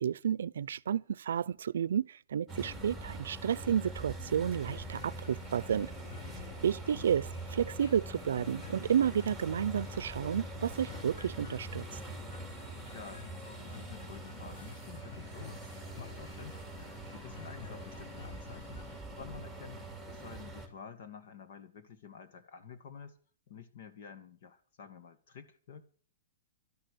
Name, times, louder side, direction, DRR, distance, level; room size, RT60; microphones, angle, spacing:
voice 1, 0.0-5.9 6.6-11.8, right 8 dB, 85° right, 0.6 m, -31 dB
sound 1, 2.5-20.7, right 1 dB, 5° left, 3.1 m, -44 dB
sound 2, 4.6-19.0, left 7 dB, 85° left, 1.7 m, -52 dB
voice 2, 6.2-6.6 12.9-16.6 17.1-18.8 19.1-23.2 23.5-25.8, left 6 dB, 55° left, 2.2 m, -50 dB
12.5 x 11.5 x 7.0 m
hypercardioid pair, 165°, 0 cm